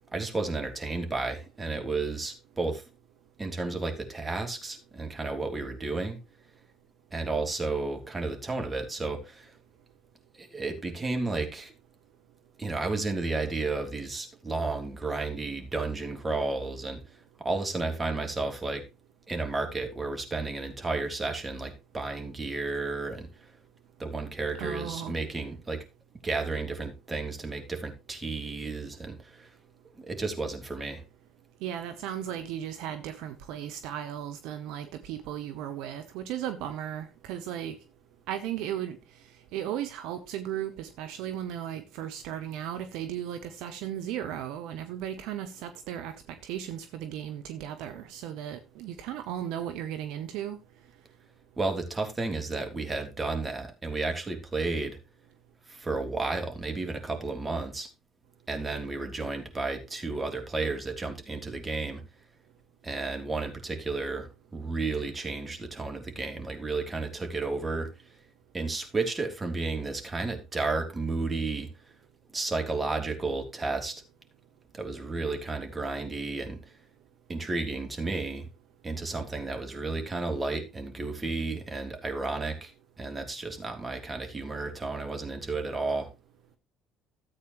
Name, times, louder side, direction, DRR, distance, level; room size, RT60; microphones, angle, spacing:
voice 1, 0.1-2.8 3.4-6.2 7.1-9.5 10.4-11.7 12.6-17.0 17.4-18.8 19.3-23.3 24.0-25.8 26.2-29.5 30.0-31.0 51.6-55.0 55.7-57.9 58.5-62.0 62.8-67.9 68.5-71.7 72.3-74.0 74.7-76.6 77.3-78.5 78.8-82.7 83.0-86.1, right 3 dB, 25° right, 3.3 m, -32 dB
voice 2, 24.6-25.1 31.6-37.7 38.3-39.0 39.5-46.1 46.4-50.6, right 10 dB, 70° right, 1.0 m, -36 dB
13.5 x 8.5 x 3.1 m
hypercardioid pair, 60°, 0 cm